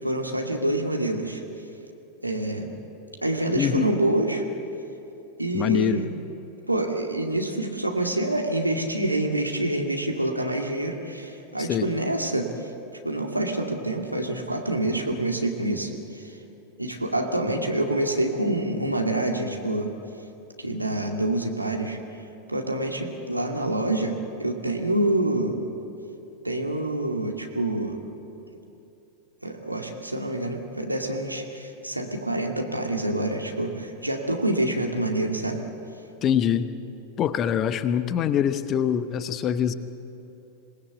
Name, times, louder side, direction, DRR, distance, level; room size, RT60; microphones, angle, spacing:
voice 1, 0.0-1.4 2.2-2.7 3.2-4.4 5.4-6.1 6.7-12.5 13.0-16.4 16.8-19.9 20.6-22.0 22.5-25.6 26.4-28.0 29.4-35.6, right 1 dB, 85° right, 2 dB, 2.2 m, -27 dB
voice 2, 3.5-3.9 5.5-6.0 11.6-11.9 36.2-36.7 37.2-39.7, left 9 dB, 30° left, 12 dB, 1.0 m, -24 dB
26.5 x 19.5 x 8.0 m, 2.8 s
figure-of-eight pair, 90°, 0 cm